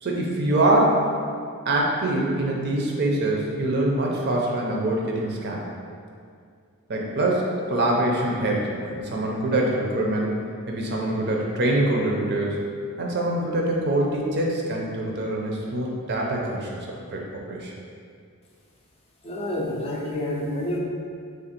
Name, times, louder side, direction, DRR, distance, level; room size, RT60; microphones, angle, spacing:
voice 1, 0.0-1.0 1.7-5.6 6.9-10.4 10.7-12.6 13.0-17.7, right 1 dB, 50° right, -2 dB, 0.5 m, -24 dB
voice 2, 19.2-20.8, left 1 dB, 25° left, -3 dB, 0.5 m, -28 dB
3.4 x 2.5 x 4.2 m, 2.2 s
head